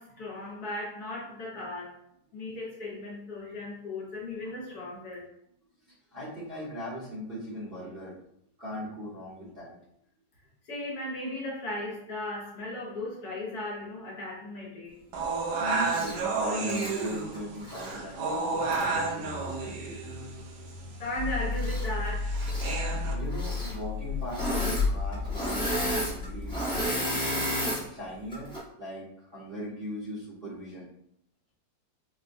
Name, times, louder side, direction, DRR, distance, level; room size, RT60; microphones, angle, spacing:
voice 1, 0.0-2.0 2.3-5.3 10.6-15.0 20.9-22.3, left 1 dB, 65° left, -3 dB, 1.3 m, -36 dB
voice 2, 5.8-8.1 8.6-9.7 15.6-20.0 23.1-27.5 27.9-28.5 28.8-30.9, equal, 40° right, -10 dB, 1.0 m, -39 dB
sound 1, 15.1-23.1, right 3 dB, 75° right, 1.1 m, -32 dB
Engine / Mechanisms, 15.9-16.2 16.6-17.9 18.7-18.8 21.5-22.1 22.3-22.7 23.3-23.8 24.3-24.9 25.1-27.8 28.3-28.6, equal, 5° left, 0.4 m, -32 dB
sound 2, 21.1-26.9, left 4 dB, 40° left, 1.2 m, -32 dB
4.4 x 2.1 x 2.5 m, 0.74 s
omnidirectional pair, 1.9 m